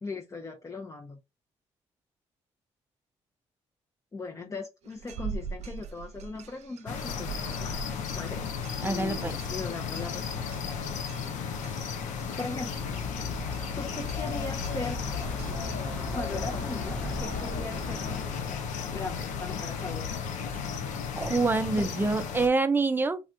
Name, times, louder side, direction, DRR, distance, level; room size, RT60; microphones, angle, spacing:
voice 1, 0.0-1.2 4.1-8.4 8.8-10.7 12.4-12.8 13.8-15.0 16.1-20.1 21.8-21.9, left 3 dB, 25° left, 0.6 m, -39 dB
sound 1, 4.8-15.8, right 6 dB, 65° right, 0.6 m, -44 dB
sound 2, 6.9-22.5, left 6 dB, 80° left, 0.6 m, -34 dB
voice 2, 8.8-9.4 21.2-23.2, right 3 dB, 15° right, 0.5 m, -26 dB
sound 3, 12.7-18.4, left 1 dB, 10° left, 1.0 m, -38 dB
3.4 x 2.3 x 2.6 m
cardioid pair, 75°, 12 cm